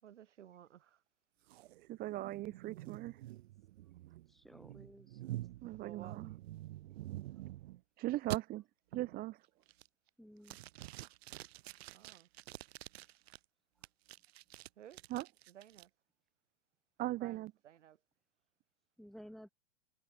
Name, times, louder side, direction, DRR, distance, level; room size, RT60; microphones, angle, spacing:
voice 1, 0.0-1.0 5.7-6.2 11.9-12.3 14.8-15.0 15.5-15.9 17.0-18.0, right 10 dB, 90° right, 7.1 m, -56 dB
sound 1, 1.5-7.8 8.3-8.4 8.9-9.3 9.7-10.1 10.4-13.4 13.8-15.8, right 16 dB, 60° right, 1.6 m, -47 dB
voice 2, 1.9-3.2 5.6-6.3 8.0-8.6 8.9-9.4 15.1-15.3 17.0-17.5, right 16 dB, 25° right, 1.4 m, -39 dB
voice 3, 4.3-5.2 10.2-10.6 19.0-19.5, equal, ahead, 4.0 m, -54 dB
supercardioid pair, 155°, 35 cm